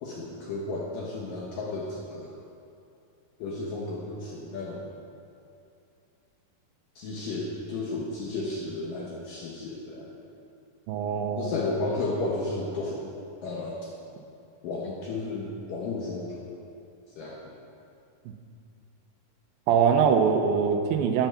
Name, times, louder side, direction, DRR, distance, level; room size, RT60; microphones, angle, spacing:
voice 1, 0.0-2.4 3.4-4.9 7.0-10.1 11.4-13.2 13.4-13.9 14.6-16.5 17.2-17.6, left 2 dB, 75° left, -4 dB, 2.0 m, -33 dB
voice 2, 10.9-11.5 19.7-21.3, right 6 dB, 80° right, 5 dB, 2.9 m, -23 dB
12.5 x 9.0 x 5.8 m, 2.6 s
omnidirectional pair, 5.4 m